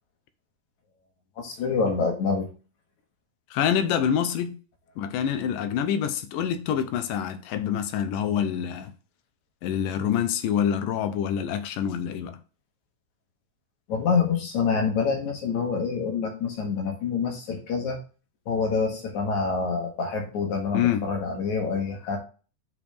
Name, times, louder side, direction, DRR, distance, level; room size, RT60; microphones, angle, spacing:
voice 1, 1.4-2.5 13.9-18.0 18.5-22.2, left 5 dB, 60° left, 2.8 m, -26 dB
voice 2, 3.5-4.6 5.0-8.9 9.6-12.4 20.7-21.1, left 9 dB, 80° left, 2.4 m, -26 dB
8.5 x 5.0 x 3.4 m
omnidirectional pair, 4.0 m